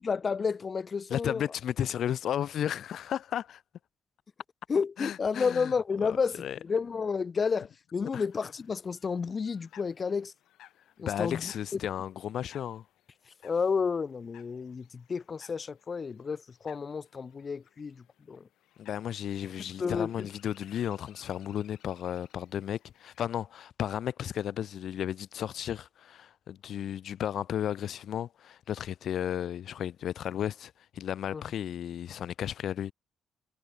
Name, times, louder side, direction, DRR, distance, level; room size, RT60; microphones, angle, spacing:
voice 1, 0.0-1.5 4.7-10.3 11.0-11.8 13.4-18.4 19.8-20.3 31.3-31.4, left 5 dB, 25° left, 0.5 m, -31 dB
voice 2, 1.1-3.6 5.0-5.7 6.4-6.6 8.1-8.2 11.0-12.8 18.8-32.9, left 10 dB, 50° left, 0.9 m, -34 dB
sound 1, 8.1-23.2, left 13 dB, 75° left, 6.2 m, -60 dB
cardioid pair, 175°, 0 cm